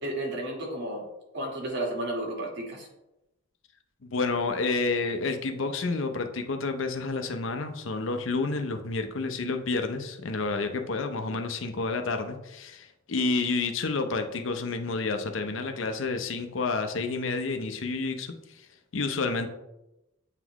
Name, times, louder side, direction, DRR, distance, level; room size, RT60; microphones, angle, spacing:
voice 1, 0.0-1.1 1.3-2.9, right 1 dB, 55° right, 0 dB, 1.5 m, -32 dB
voice 2, 4.0-18.3 18.9-19.5, left 3 dB, 65° left, 6 dB, 0.6 m, -29 dB
8.2 x 3.9 x 3.0 m, 0.92 s
head